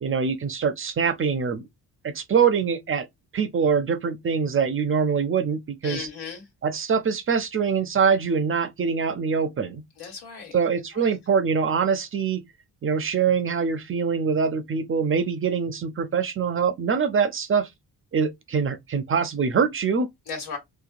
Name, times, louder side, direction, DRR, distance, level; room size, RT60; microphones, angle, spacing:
voice 1, 0.0-1.7 2.0-3.1 3.3-6.1 6.6-9.8 10.5-12.4 12.8-17.7 18.1-20.1, right 6 dB, 35° right, 0.4 m, -24 dB
voice 2, 5.8-6.5 10.0-10.6 10.9-11.1 20.3-20.6, left 5 dB, 85° left, 1.6 m, -36 dB
2.8 x 2.2 x 2.4 m
cardioid pair, 80°, 38 cm